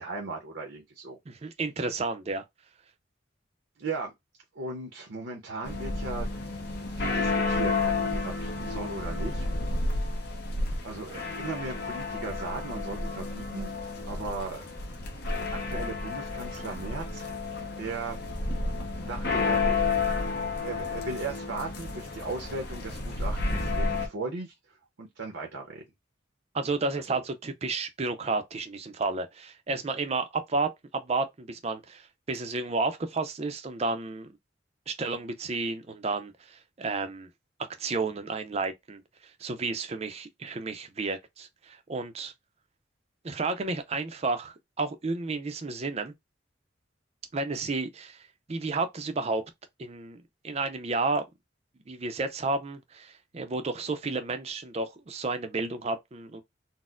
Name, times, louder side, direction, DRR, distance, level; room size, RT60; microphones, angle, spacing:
voice 1, 0.0-1.2 3.8-4.1 4.5-6.3 7.0-9.5 10.8-13.7 14.1-14.6 15.4-17.2 17.8-18.2 18.5-18.6 19.1-19.9 20.6-25.8 26.9-27.2, right 3 dB, 75° right, 0.7 m, -37 dB
voice 2, 1.3-2.4 26.5-34.3 34.9-37.3 37.8-39.0 39.4-42.3 43.2-46.1 47.3-49.4 49.8-50.2 50.4-51.2 51.9-56.4, right 3 dB, 35° right, 0.5 m, -31 dB
sound 1, 5.6-24.1, left 3 dB, 55° left, 0.9 m, -31 dB
4.1 x 2.0 x 2.4 m
head